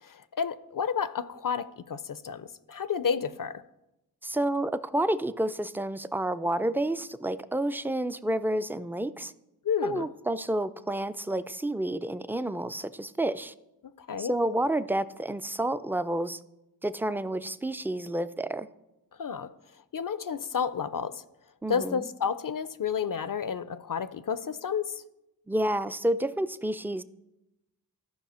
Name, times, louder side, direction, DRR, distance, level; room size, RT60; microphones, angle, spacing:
voice 1, 0.0-3.6 9.6-10.1 13.8-14.3 19.2-19.5 19.9-21.2 21.7-25.0, left 7 dB, 55° left, 0.5 m, -31 dB
voice 2, 4.2-9.3 9.8-13.5 14.2-16.4 16.8-18.7 21.6-22.1 25.5-27.0, right 1 dB, 5° right, 0.3 m, -29 dB
13.5 x 5.4 x 4.3 m
wide cardioid pair, 45°, 41 cm